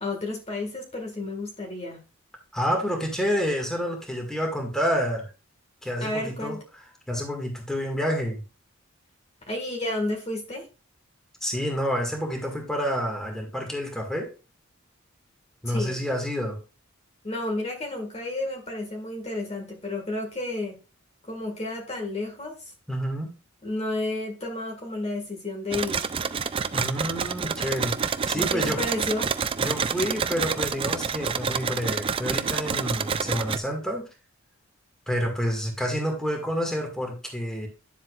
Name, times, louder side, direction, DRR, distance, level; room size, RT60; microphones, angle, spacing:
voice 1, 0.0-2.0 6.0-6.6 9.5-10.7 15.7-16.0 17.2-20.8 21.2-22.7 23.6-26.1 28.3-29.3, left 2 dB, 30° left, 1 dB, 1.8 m, -31 dB
voice 2, 2.5-5.3 5.8-6.6 7.1-8.4 11.4-14.3 15.6-16.6 22.9-23.3 26.7-28.8 29.6-34.1 35.1-37.7, equal, 5° left, 1 dB, 1.9 m, -28 dB
sound 1, 25.7-33.6, right 6 dB, 25° right, 0.3 m, -28 dB
9.9 x 7.4 x 2.4 m, 0.30 s
head